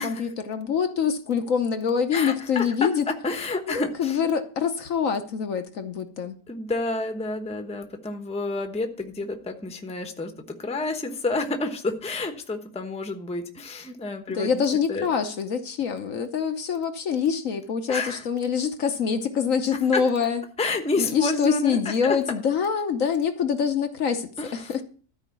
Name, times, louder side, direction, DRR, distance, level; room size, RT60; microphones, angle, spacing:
voice 1, 0.0-3.1 3.7-6.4 14.3-20.4 21.0-24.8, left 6 dB, 60° left, 1.2 m, -25 dB
voice 2, 2.1-2.9 3.2-4.2 6.5-14.6 14.9-15.1 17.9-18.3 19.9-20.0 20.6-22.2 24.4-24.7, left 3 dB, 5° left, 0.9 m, -29 dB
13.0 x 5.0 x 8.3 m
omnidirectional pair, 1.7 m